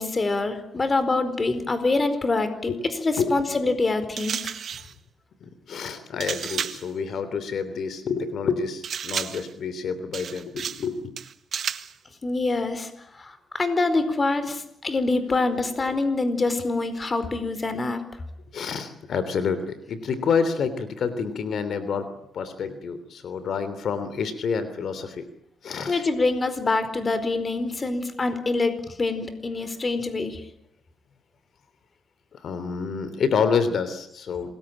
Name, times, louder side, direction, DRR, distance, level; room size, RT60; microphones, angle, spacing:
voice 1, 0.0-4.4 12.2-12.9 13.2-18.0 25.9-30.4, left 3 dB, 25° left, 11 dB, 4.6 m, -25 dB
sound 1, 4.2-4.9 6.2-6.9 8.8-9.5 10.1-10.9 11.2-11.9, right 8 dB, 60° right, 1.7 m, -32 dB
voice 2, 5.7-11.1 18.5-22.1 22.3-25.2 25.6-26.0 27.5-27.6 32.4-34.5, left 5 dB, 60° left, 12 dB, 3.3 m, -28 dB
27.5 x 21.5 x 8.9 m, 0.75 s
cardioid pair, 110°, 0 cm